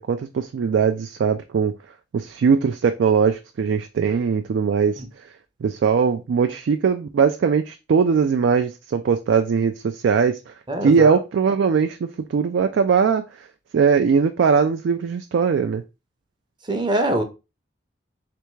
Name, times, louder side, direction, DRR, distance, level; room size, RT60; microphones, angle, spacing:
voice 1, 0.0-1.7 2.1-5.0 5.6-10.5 10.8-13.2 13.7-15.8, right 6 dB, 70° right, 0.3 m, -20 dB
voice 2, 10.7-11.2 16.7-17.2, right 1 dB, 25° right, 0.6 m, -23 dB
3.4 x 3.4 x 3.1 m
head